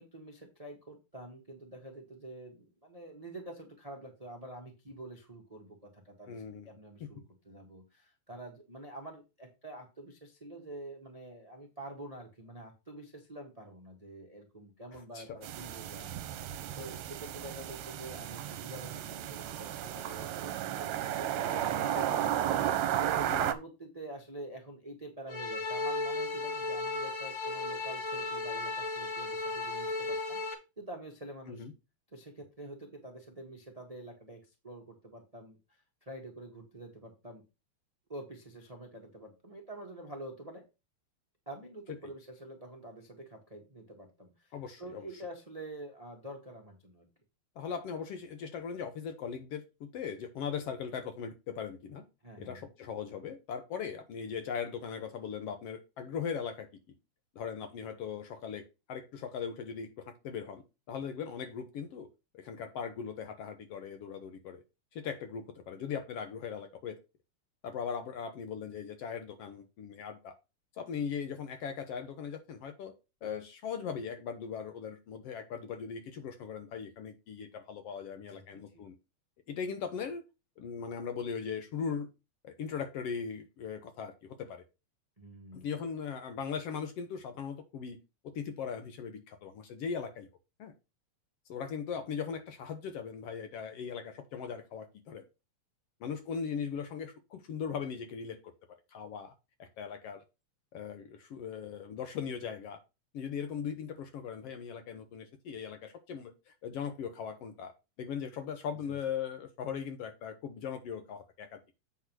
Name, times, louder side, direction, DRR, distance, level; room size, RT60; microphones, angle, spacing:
voice 1, 0.0-16.5 16.8-22.4 22.6-30.4 30.8-31.6 32.1-37.4 38.1-40.6 41.4-47.1 52.2-52.7 78.2-78.8 85.2-85.7, right 1 dB, 25° right, 0.7 m, -47 dB
voice 2, 6.3-6.7 7.0-7.1 15.1-15.2 16.0-16.1 23.3-23.5 31.5-31.7 42.0-42.1 44.5-45.1 47.6-52.0 52.4-56.7 57.3-60.6 60.9-62.1 62.3-64.6 64.9-67.0 67.6-70.3 70.8-72.9 73.2-78.9 79.5-80.3 80.6-82.1 82.4-84.6 85.5-88.0 88.2-90.3 90.6-90.7 91.5-95.2 96.0-98.4 98.9-99.3 99.6-100.2 100.7-102.8 103.1-107.7 108.0-111.6, left 6 dB, 65° left, 1.7 m, -39 dB
sound 1, 15.4-23.5, right 11 dB, 75° right, 1.9 m, -33 dB
sound 2, 25.3-30.5, left 3 dB, 45° left, 1.0 m, -35 dB
8.2 x 3.6 x 6.1 m
omnidirectional pair, 3.3 m